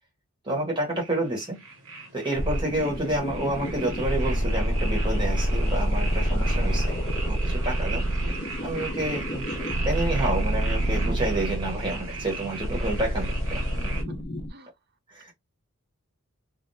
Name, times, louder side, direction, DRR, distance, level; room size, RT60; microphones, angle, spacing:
voice 1, 0.4-1.6 2.1-6.9 7.3-8.0 8.6-13.6 15.1-15.3, right 1 dB, 20° right, 1.3 m, -29 dB
sound 1, 1.0-14.0, right 3 dB, 75° right, 1.2 m, -38 dB
sound 2, 2.4-14.5, right 1 dB, 30° left, 0.4 m, -27 dB
voice 2, 13.8-14.2 14.5-14.7, right 4 dB, 45° right, 0.5 m, -43 dB
3.4 x 2.3 x 2.7 m
head